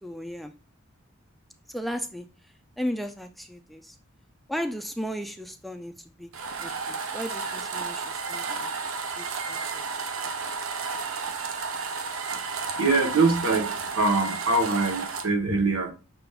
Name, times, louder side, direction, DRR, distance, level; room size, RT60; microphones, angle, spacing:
voice 1, 0.0-0.5 1.7-2.3 2.8-4.0 4.5-5.9 6.2-6.3 6.6-8.0 8.3-8.7 9.2-9.8, equal, ahead, 0.3 m, -35 dB
sound 1, 6.3-15.3, right 4 dB, 75° right, 0.6 m, -32 dB
voice 2, 12.8-15.9, right 3 dB, 90° right, 1.0 m, -23 dB
5.9 x 3.4 x 2.3 m
head